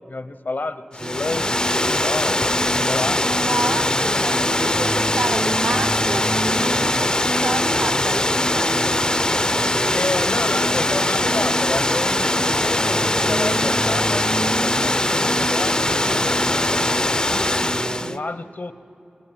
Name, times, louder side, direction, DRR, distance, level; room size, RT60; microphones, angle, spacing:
voice 1, 0.1-3.7 4.1-4.3 4.5-4.7 9.9-17.5 18.0-18.7, left 3 dB, 65° left, 12 dB, 0.9 m, -30 dB
Water, 1.0-18.2, left 1 dB, 25° left, 0.5 m, -21 dB
sound 1, 1.0-18.2, right 2 dB, 40° right, 0.5 m, -30 dB
voice 2, 3.4-8.9 17.8-18.4, right 2 dB, 65° right, 10 dB, 0.9 m, -31 dB
22.5 x 22.5 x 9.4 m, 2.9 s
wide cardioid pair, 50°, 3 cm